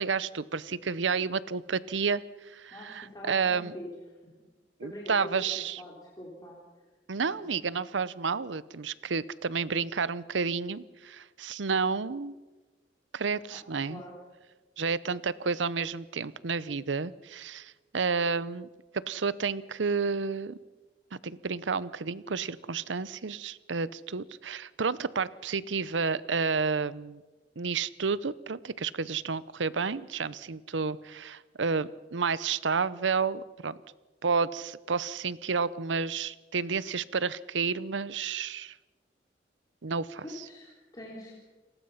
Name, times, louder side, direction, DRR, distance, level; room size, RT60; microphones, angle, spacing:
voice 1, 0.0-3.7 4.8-5.8 7.1-12.3 13.1-14.0 14.8-18.7 18.9-20.6 21.1-27.2 27.6-33.8 34.2-38.7 39.8-40.4, right 5 dB, 85° right, 18 dB, 0.7 m, -31 dB
voice 2, 2.7-3.9 4.8-6.6 7.3-7.8 13.5-13.6 13.9-14.2 40.2-41.4, equal, 20° left, -3 dB, 3.8 m, -44 dB
30.0 x 20.0 x 5.7 m, 1.2 s
head